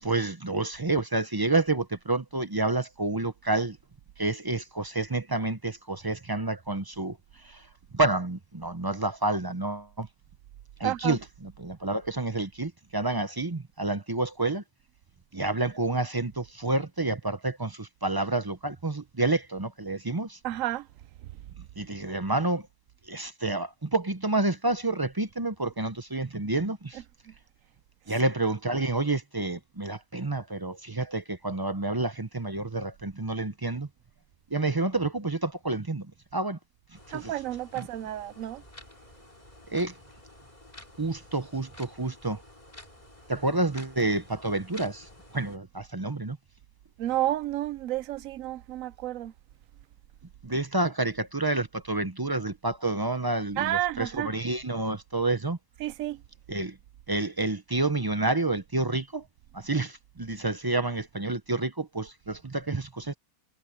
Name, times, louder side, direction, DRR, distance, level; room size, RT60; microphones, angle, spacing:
voice 1, 0.0-3.8 4.2-7.2 7.4-7.6 7.9-10.1 10.8-14.6 15.3-20.4 21.8-22.7 23.1-27.0 28.1-33.9 34.5-36.6 37.1-37.3 37.8-37.9 39.7-39.9 41.0-42.4 43.3-46.4 50.4-55.6 56.5-56.8 57.1-59.2 59.5-63.1, right 2 dB, 25° right, 0.5 m, -29 dB
voice 2, 10.8-11.2 20.4-20.9 27.3-27.4 37.1-38.6 47.0-49.3 53.6-54.3 55.8-56.2, right 14 dB, 70° right, 0.9 m, -31 dB
sound 1, 36.9-45.6, left 1 dB, 25° left, 3.7 m, -51 dB
omnidirectional pair, 1.6 m